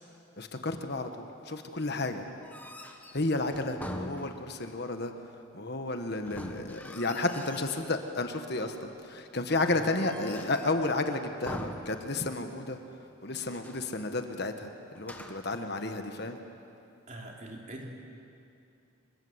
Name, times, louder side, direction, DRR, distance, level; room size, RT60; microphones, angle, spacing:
voice 1, 0.4-2.2 3.1-5.1 5.5-12.8 13.2-16.4, left 2 dB, 50° left, 6 dB, 1.4 m, -32 dB
sound 1, 2.4-4.8 6.2-7.9 8.3-8.9 9.5-10.9 11.4-12.5 12.8-12.9 13.4-13.9 14.9-15.6, equal, 5° left, 1.3 m, -44 dB
voice 2, 17.1-17.8, right 1 dB, 35° right, 0 dB, 3.6 m, -43 dB
26.5 x 22.5 x 8.1 m, 2.7 s
head